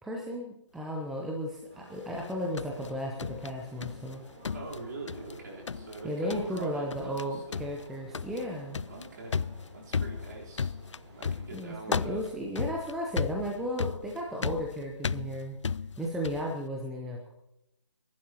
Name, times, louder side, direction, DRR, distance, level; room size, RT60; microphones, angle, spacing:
voice 1, 0.0-4.2 6.0-8.8 11.5-15.6 16.0-17.3, equal, ahead, -1 dB, 0.7 m, -34 dB
sound 1, 1.7-11.5, right 1 dB, 20° right, 5.0 m, -52 dB
sound 2, 2.2-4.1 4.4-5.4 5.7-6.0 6.3-6.6 6.9-7.2 7.5-16.5, left 6 dB, 80° left, 0.4 m, -35 dB
voice 2, 4.5-7.7 8.9-10.7 11.2-12.3, right 3 dB, 40° right, -3 dB, 3.8 m, -44 dB
29.5 x 11.5 x 2.9 m, 0.87 s
figure-of-eight pair, 155°, 15 cm